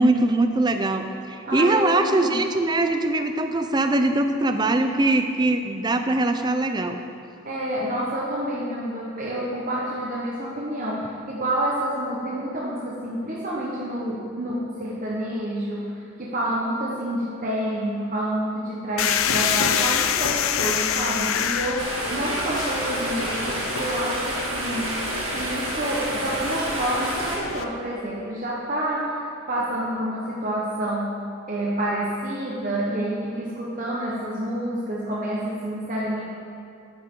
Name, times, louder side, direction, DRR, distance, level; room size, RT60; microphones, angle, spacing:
voice 1, 0.0-7.0, right 2 dB, 20° right, 7 dB, 0.5 m, -22 dB
voice 2, 1.4-2.4 7.4-24.9 25.3-31.2 31.5-36.2, right 1 dB, 40° right, -5 dB, 1.0 m, -28 dB
sound 1, 19.0-27.6, left 8 dB, 80° left, 0.5 m, -27 dB
sound 2, 21.8-27.4, right 2 dB, 80° right, 2.0 m, -29 dB
13.5 x 8.9 x 3.7 m, 2.6 s
head